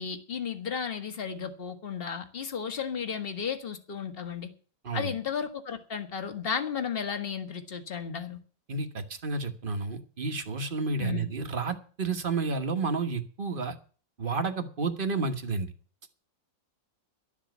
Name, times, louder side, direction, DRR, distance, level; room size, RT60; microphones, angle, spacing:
voice 1, 0.0-4.5 4.9-8.4 11.0-11.3, left 7 dB, 35° left, 8 dB, 1.6 m, -34 dB
voice 2, 8.7-13.7 14.2-15.7, right 4 dB, 30° right, 7 dB, 1.3 m, -31 dB
12.0 x 7.4 x 9.4 m, 0.40 s
omnidirectional pair, 2.0 m